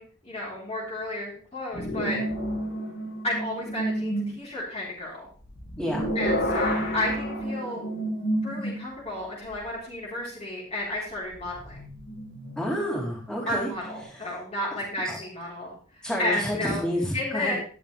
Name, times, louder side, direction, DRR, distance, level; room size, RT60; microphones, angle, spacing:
voice 1, 0.0-2.2 3.2-5.3 6.1-7.8 8.4-11.8 13.5-16.8 17.1-17.6, left 1 dB, 30° left, -6 dB, 4.1 m, -32 dB
sound 1, 1.7-4.4 5.4-9.0 9.6-9.7 11.4-14.0, equal, 55° left, 4.1 m, -30 dB
voice 2, 5.8-6.1 12.6-13.7 14.1-14.3 15.1-15.2 16.0-17.5, equal, 5° left, -4 dB, 3.8 m, -29 dB
12.5 x 10.0 x 3.4 m, 0.42 s
head